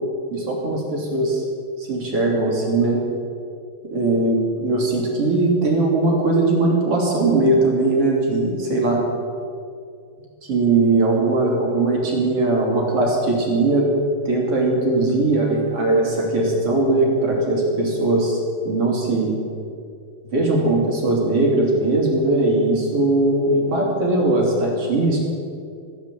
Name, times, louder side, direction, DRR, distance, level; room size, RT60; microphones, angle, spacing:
voice 1, 0.3-1.4 1.8-3.0 3.9-9.0 10.4-13.9 14.2-19.4 20.3-25.2, right 2 dB, 35° right, -2 dB, 3.3 m, -20 dB
16.0 x 11.0 x 7.6 m, 2.3 s
omnidirectional pair, 4.9 m